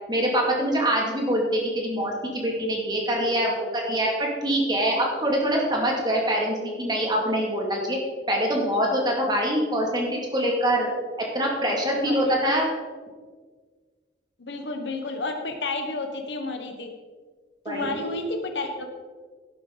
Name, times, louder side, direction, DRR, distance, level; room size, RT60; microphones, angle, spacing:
voice 1, 0.1-8.0 8.3-10.9 11.3-12.7 17.6-17.9, equal, 25° right, -1 dB, 2.4 m, -24 dB
voice 2, 12.1-12.4 14.4-16.9 17.7-18.9, left 2 dB, 75° left, 5 dB, 1.2 m, -31 dB
12.0 x 10.0 x 4.0 m, 1.5 s
head